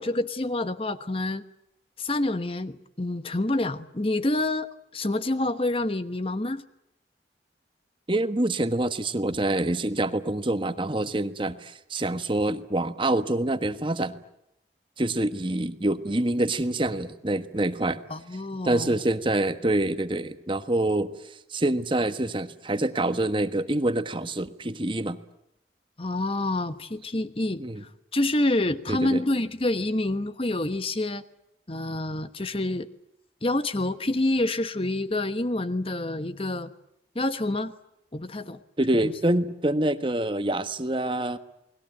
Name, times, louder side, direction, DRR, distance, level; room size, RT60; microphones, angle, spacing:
voice 1, 0.0-1.4 2.0-6.6 18.1-18.9 26.0-27.6 28.1-31.2 31.7-32.9 33.4-36.7 37.1-37.7 38.1-38.6 39.0-39.1, left 2 dB, 30° left, 11 dB, 1.1 m, -27 dB
voice 2, 8.1-14.2 15.0-18.0 18.6-21.1 21.5-25.2 27.6-27.8 28.9-29.2 38.8-41.4, right 1 dB, 30° right, 11 dB, 1.3 m, -26 dB
29.5 x 20.5 x 8.9 m, 0.83 s
head